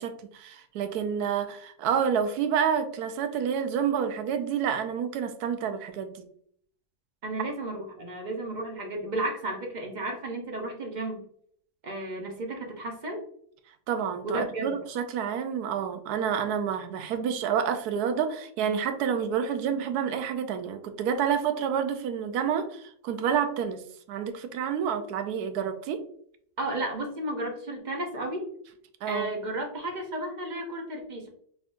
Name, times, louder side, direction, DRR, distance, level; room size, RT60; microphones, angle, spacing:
voice 1, 0.0-6.2 13.9-23.8 24.1-26.0 29.0-29.3, right 7 dB, 85° right, 8 dB, 1.1 m, -29 dB
voice 2, 7.2-11.3 11.8-13.3 14.2-14.7 26.6-28.5 29.0-31.3, right 1 dB, 50° right, 2 dB, 0.5 m, -33 dB
3.8 x 3.5 x 2.5 m, 0.63 s
omnidirectional pair, 1.6 m